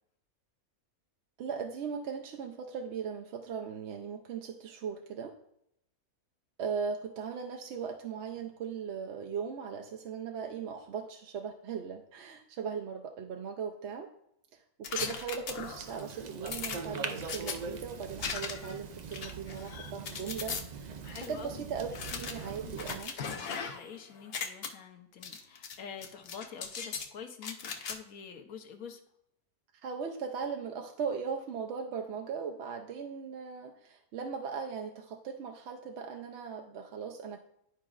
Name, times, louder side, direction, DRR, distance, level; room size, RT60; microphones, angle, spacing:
voice 1, 1.4-5.4 6.6-14.1 14.5-21.9 22.2-23.1 29.8-37.4, right 6 dB, 65° right, 3 dB, 0.8 m, -38 dB
sound 1, 14.8-15.9 16.5-17.6 18.2-18.8 19.1-20.6 21.2-21.3 21.9-23.9 24.2-24.7 25.2-25.8 26.0-27.1 27.4-28.0, left 6 dB, 55° left, 0.8 m, -38 dB
sound 2, 15.6-23.0, right 5 dB, 80° right, 0.3 m, -42 dB
voice 2, 21.0-21.6 22.1-22.8 23.3-29.0, left 7 dB, 80° left, 5 dB, 1.3 m, -47 dB
11.5 x 4.9 x 2.4 m, 0.76 s
omnidirectional pair, 1.5 m